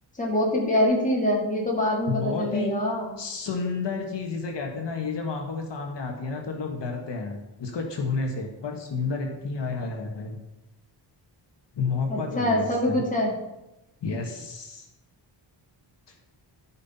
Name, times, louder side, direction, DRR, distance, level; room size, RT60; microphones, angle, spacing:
voice 1, 0.2-3.2 12.1-13.3, left 1 dB, 15° left, -2 dB, 2.2 m, -24 dB
voice 2, 2.1-2.7 3.2-10.4 11.7-13.0 14.0-14.9, left 4 dB, 65° left, 1 dB, 1.6 m, -31 dB
14.0 x 5.7 x 4.2 m, 0.93 s
wide cardioid pair, 170°, 45 cm